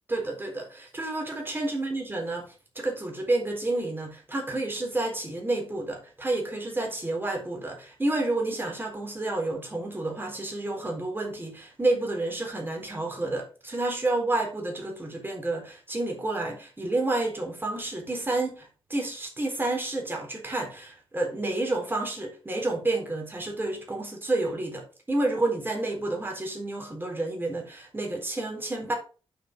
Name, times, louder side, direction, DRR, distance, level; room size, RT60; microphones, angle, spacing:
voice 1, 0.1-28.9, right 2 dB, 20° right, 3.8 m, -30 dB
9.1 x 5.8 x 5.2 m
wide cardioid pair, 95°, 10 cm